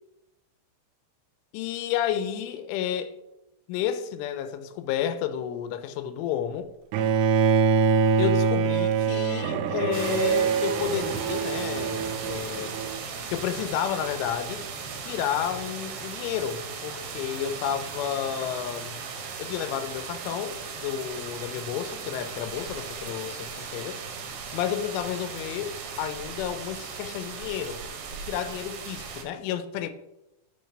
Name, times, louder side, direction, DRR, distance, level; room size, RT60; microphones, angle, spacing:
voice 1, 1.5-3.1 3.7-6.7 8.2-12.7 13.3-14.6 15.1-19.0 19.4-24.0 24.5-27.8 28.3-29.9, left 9 dB, 85° left, 3.2 m, -31 dB
Bowed string instrument, 6.9-13.0, right 5 dB, 85° right, 3.1 m, -24 dB
sound 1, 9.9-29.2, right 5 dB, 65° right, 2.4 m, -37 dB
9.6 x 4.1 x 7.1 m
omnidirectional pair, 5.5 m